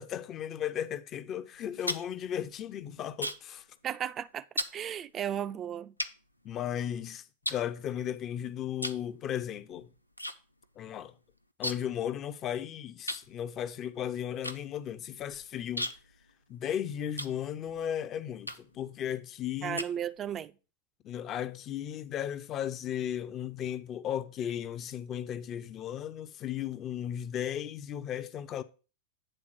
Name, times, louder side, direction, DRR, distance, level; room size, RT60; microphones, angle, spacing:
voice 1, 0.0-3.6 6.4-9.9 10.8-11.1 11.6-15.9 16.5-19.8 21.0-28.6, left 10 dB, 30° left, 0.5 m, -35 dB
sound 1, 1.5-3.6 3.9-4.2 4.6-4.8 5.4-5.5 6.0-7.0 7.4-8.3 8.8-9.1 9.4-10.4 10.6-10.7 11.0-12.0 12.3-12.4 13.1-17.8 18.4-18.8 19.3-20.4, equal, 90° left, 0.5 m, -37 dB
voice 2, 3.8-4.5 4.7-5.9 19.6-20.5, right 9 dB, 25° right, 0.4 m, -34 dB
9.0 x 3.6 x 6.1 m
figure-of-eight pair, 90°, 0 cm